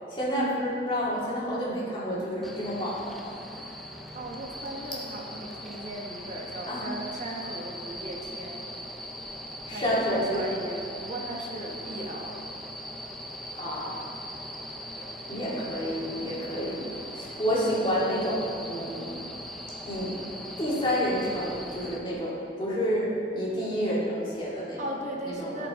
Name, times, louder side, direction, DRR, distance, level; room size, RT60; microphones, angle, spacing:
voice 1, 0.1-3.3 6.7-6.8 9.7-10.5 13.6-14.0 15.3-16.8 17.1-19.2 19.9-20.1 20.6-24.8 25.2-25.7, equal, 30° left, -7 dB, 2.1 m, -29 dB
sound 1, 2.4-22.0, equal, ahead, 0.6 m, -40 dB
voice 2, 4.1-8.7 9.7-12.5 14.9-15.2 24.8-25.7, right 1 dB, 45° right, -1 dB, 1.1 m, -37 dB
12.0 x 5.0 x 4.0 m, 2.5 s
head